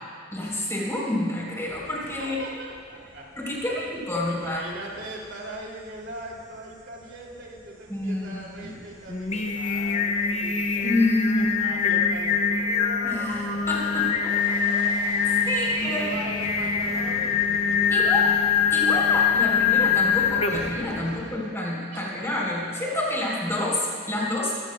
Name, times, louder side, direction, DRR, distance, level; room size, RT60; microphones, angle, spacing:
voice 1, 0.3-2.4 3.4-4.6 7.9-8.7 10.8-11.5 13.0-14.3 15.2-16.1 17.9-18.3 18.7-24.5, left 1 dB, 15° left, -4 dB, 3.5 m, -28 dB
sound 1, 1.7-21.4, right 1 dB, 35° right, 2.3 m, -46 dB
voice 2, 2.0-3.3 3.7-3.8 4.3-10.9 11.3-13.4 13.9-14.0 14.4-14.8 15.2-18.1 18.6-19.6 21.0-21.4 21.9-22.3 22.6-22.8, right 2 dB, 65° right, -2 dB, 2.5 m, -41 dB
Singing, 9.1-20.8, left 6 dB, 35° left, 0.8 m, -24 dB
23.0 x 16.0 x 2.2 m, 2.2 s
head